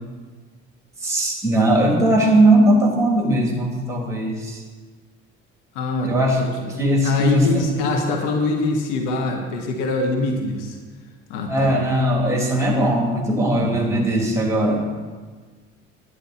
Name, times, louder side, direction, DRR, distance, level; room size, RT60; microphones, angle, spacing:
voice 1, 1.0-4.6 6.0-6.4 6.8-7.8 11.5-15.1, right 1 dB, 10° right, -1 dB, 3.2 m, -19 dB
voice 2, 5.7-6.7 7.0-10.8 11.3-11.7 13.5-14.0, left 3 dB, 70° left, 3 dB, 1.4 m, -24 dB
10.5 x 9.5 x 4.3 m, 1.4 s
hypercardioid pair, 60°, 36 cm